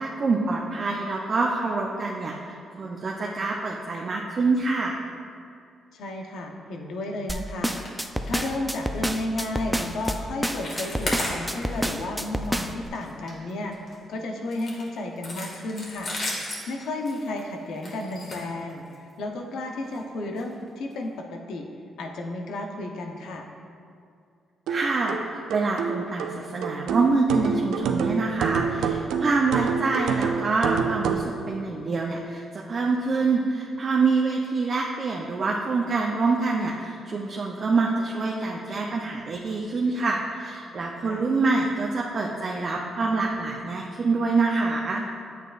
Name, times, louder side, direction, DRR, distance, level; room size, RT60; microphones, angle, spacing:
voice 1, 0.0-5.0 24.7-45.0, right 3 dB, 50° right, -1 dB, 0.7 m, -26 dB
voice 2, 5.9-7.9 8.2-16.1 16.7-21.7 22.0-23.5 41.0-41.3, left 2 dB, 80° left, 2 dB, 0.8 m, -33 dB
sound 1, 7.3-12.9, equal, 5° right, 0.5 m, -28 dB
sound 2, 7.8-7.9 8.2-8.5 8.8-9.0 9.4-9.6 10.0-10.2 10.5-11.9 12.3-12.5 12.8-14.0 14.5-19.1 19.8-20.0 20.4-20.5 20.9-21.0, left 1 dB, 50° left, 1.9 m, -35 dB
sound 3, 24.7-31.3, right 6 dB, 85° right, 0.4 m, -27 dB
8.9 x 8.1 x 2.5 m, 2.3 s
cardioid pair, 80°, 0 cm